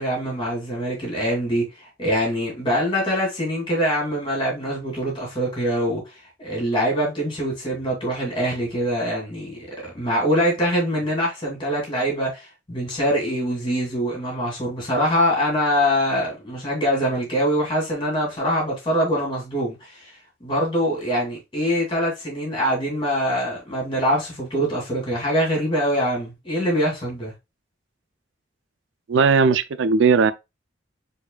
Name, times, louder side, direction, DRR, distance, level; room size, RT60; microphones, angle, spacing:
voice 1, 0.0-1.7 2.0-6.0 6.4-20.1 20.4-27.3, equal, 25° left, 2.4 m, -24 dB
voice 2, 29.1-30.3, right 5 dB, 80° right, 0.4 m, -17 dB
4.7 x 4.2 x 2.2 m
head